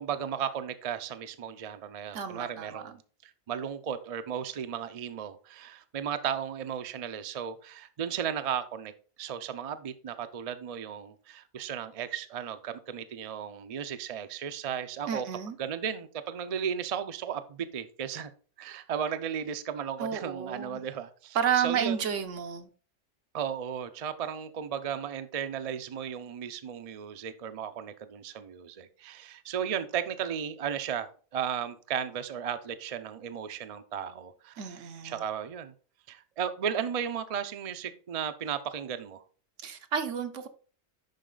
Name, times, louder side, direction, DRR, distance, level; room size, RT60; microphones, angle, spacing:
voice 1, 0.0-8.9 9.2-15.3 15.6-18.3 18.6-22.1 23.3-35.7 36.1-39.2, right 8 dB, 45° right, 0.5 m, -35 dB
voice 2, 2.1-2.9 15.1-15.6 20.0-20.8 21.3-22.7 34.6-35.2 39.6-40.5, right 8 dB, 75° right, 1.2 m, -31 dB
10.5 x 4.1 x 3.8 m
omnidirectional pair, 1.3 m